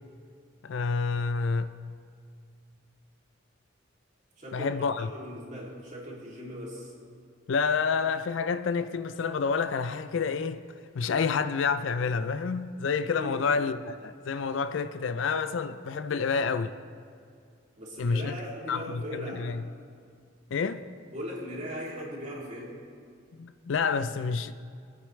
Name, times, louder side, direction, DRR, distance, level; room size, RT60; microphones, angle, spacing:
voice 1, 0.6-1.7 4.5-5.1 7.5-10.6 10.9-16.7 18.0-18.4 18.7-19.6 20.5-20.8 23.4-24.5, left 5 dB, 65° left, 0.4 m, -28 dB
voice 2, 4.4-6.9 13.1-13.6 17.8-19.6 21.1-22.8, equal, 35° right, 2.7 m, -39 dB
23.0 x 8.0 x 3.2 m
head